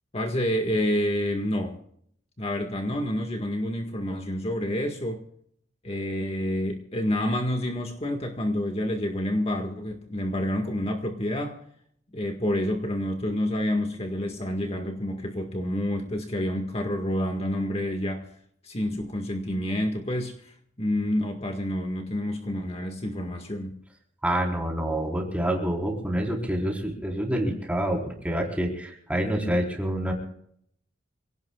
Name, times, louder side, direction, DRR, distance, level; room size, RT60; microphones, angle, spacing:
voice 1, 0.1-1.8 2.4-5.2 5.8-11.6 12.1-18.3 18.6-23.7, left 1 dB, 35° left, 2 dB, 1.8 m, -28 dB
voice 2, 24.2-30.1, right 1 dB, 5° right, 0 dB, 4.3 m, -27 dB
27.0 x 18.0 x 2.4 m, 0.67 s
head